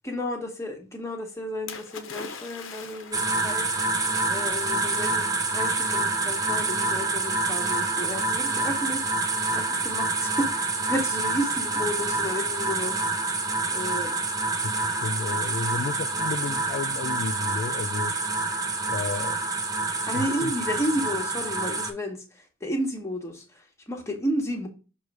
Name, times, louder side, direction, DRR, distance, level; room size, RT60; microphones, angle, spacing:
voice 1, 0.0-3.7 4.3-9.0 9.5-13.0 13.7-14.2 20.1-24.7, equal, 15° left, 1.1 m, -32 dB
Splash splatter, 1.7-3.5 4.4-4.5, left 5 dB, 65° left, 0.7 m, -40 dB
sound 1, 3.1-21.9, right 3 dB, 15° right, 0.6 m, -27 dB
voice 2, 14.6-18.2 18.9-19.4 20.1-20.5, left 4 dB, 50° left, 0.3 m, -32 dB
6.4 x 3.1 x 4.7 m
head